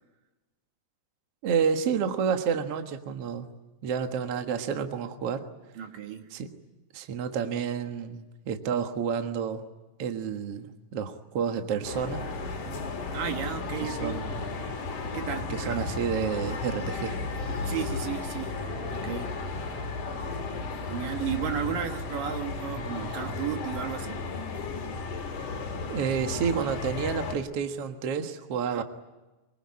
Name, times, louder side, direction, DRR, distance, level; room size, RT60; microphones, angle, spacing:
voice 1, 1.4-3.5 3.8-5.5 6.3-6.5 6.9-9.6 10.0-12.3 13.8-14.4 15.5-17.2 25.9-28.8, right 7 dB, 50° right, 6 dB, 2.1 m, -30 dB
voice 2, 5.8-6.3 13.1-14.2 15.1-15.8 17.6-18.6 18.9-19.3 20.9-24.2 28.6-28.8, right 8 dB, 75° right, 5 dB, 3.3 m, -34 dB
sound 1, 11.8-27.4, left 3 dB, 65° left, 4.2 m, -34 dB
24.0 x 24.0 x 9.7 m, 1.1 s
omnidirectional pair, 3.9 m